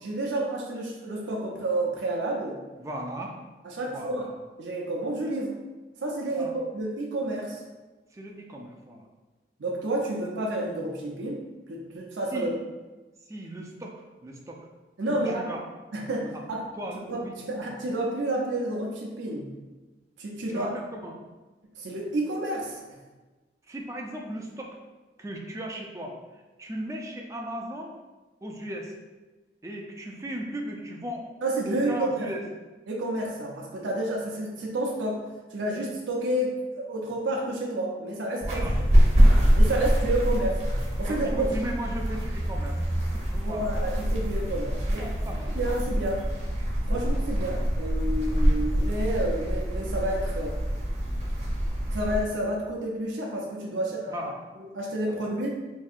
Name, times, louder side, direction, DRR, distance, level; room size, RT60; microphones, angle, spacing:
voice 1, 0.0-2.6 3.7-4.3 4.6-5.6 6.0-7.6 9.6-11.4 11.7-12.5 15.0-15.5 15.9-16.6 17.1-17.2 17.5-19.5 20.2-20.7 21.8-22.8 31.4-32.3 32.9-38.6 39.6-40.5 41.0-41.5 43.4-45.1 45.5-46.3 46.8-50.6 51.9-54.2 54.7-55.5, right 1 dB, 90° right, -2 dB, 0.6 m, -30 dB
voice 2, 2.8-3.4 3.9-4.4 6.4-6.5 8.1-9.0 12.3-12.5 13.3-14.0 14.2-14.7 15.1-15.6 16.2-16.4 16.8-17.6 20.5-21.2 23.7-24.8 25.2-27.9 28.4-29.0 29.6-31.3 31.6-32.4 38.4-38.8 39.7-39.9 40.2-40.3 41.0-42.8 43.3-43.7 45.0-45.6 46.9-47.1 54.1-54.4, equal, 15° right, 0 dB, 0.4 m, -37 dB
sound 1, 38.4-52.2, equal, 35° right, 0.7 m, -25 dB
4.6 x 2.7 x 2.4 m, 1.2 s
head